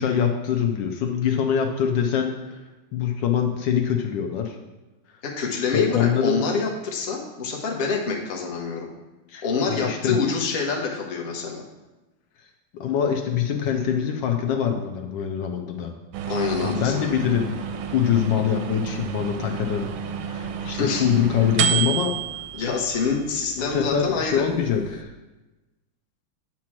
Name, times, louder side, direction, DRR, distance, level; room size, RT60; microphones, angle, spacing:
voice 1, 0.0-2.6 2.9-4.6 5.7-6.5 9.3-10.2 12.7-15.9 16.3-17.5 17.9-19.9 20.3-22.2 23.6-25.1, left 8 dB, 75° left, 3 dB, 1.3 m, -24 dB
voice 2, 5.2-8.9 9.4-11.6 16.3-17.0 20.7-21.0 22.5-24.4, left 5 dB, 40° left, 0 dB, 0.9 m, -26 dB
sound 1, 16.1-25.0, right 9 dB, 85° right, 1.4 m, -31 dB
8.5 x 3.0 x 5.9 m, 1.1 s
omnidirectional pair, 2.1 m